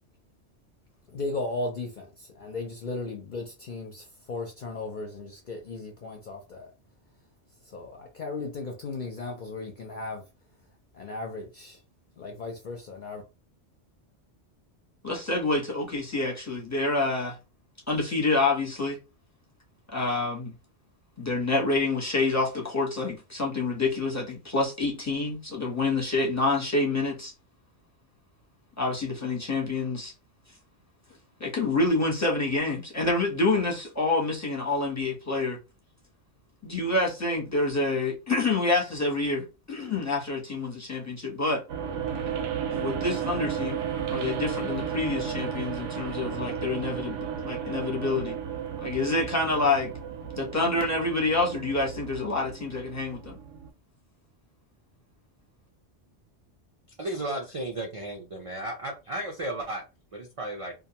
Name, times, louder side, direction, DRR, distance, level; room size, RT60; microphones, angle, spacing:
voice 1, 1.1-6.7 7.7-10.2 10.9-11.8 12.2-13.2, left 3 dB, 55° left, 0.6 m, -36 dB
voice 2, 15.0-17.4 17.9-19.0 19.9-20.5 21.2-27.3 28.8-30.1 31.4-35.6 36.6-41.6 42.7-43.8 44.1-47.2 47.4-48.4 48.8-49.9 50.4-53.4, left 3 dB, 15° left, 0.6 m, -27 dB
sound 1, 41.7-53.7, right 8 dB, 85° right, 0.9 m, -33 dB
voice 3, 57.0-59.8 60.1-60.7, right 1 dB, 50° right, 0.4 m, -34 dB
2.5 x 2.2 x 2.8 m
omnidirectional pair, 1.2 m